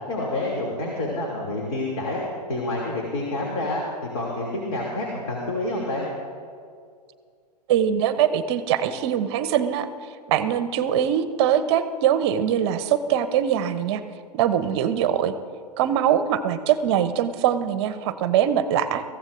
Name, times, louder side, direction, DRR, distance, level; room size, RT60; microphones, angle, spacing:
voice 1, 0.1-2.2 2.5-6.1, left 2 dB, 55° left, -2 dB, 2.9 m, -28 dB
voice 2, 7.7-9.9 10.3-14.0 14.3-15.3 15.8-19.0, right 9 dB, 40° right, 12 dB, 0.8 m, -22 dB
22.5 x 15.0 x 2.6 m, 2.2 s
figure-of-eight pair, 110°, 21 cm